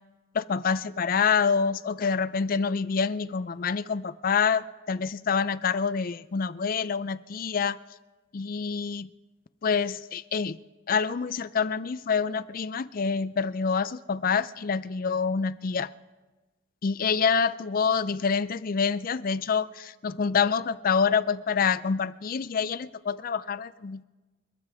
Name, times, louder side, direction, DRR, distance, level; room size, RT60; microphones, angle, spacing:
voice 1, 0.3-7.8 8.3-9.1 9.6-10.6 10.9-15.9 16.8-24.0, left 6 dB, 45° left, 0.4 m, -27 dB
29.5 x 13.0 x 3.5 m
head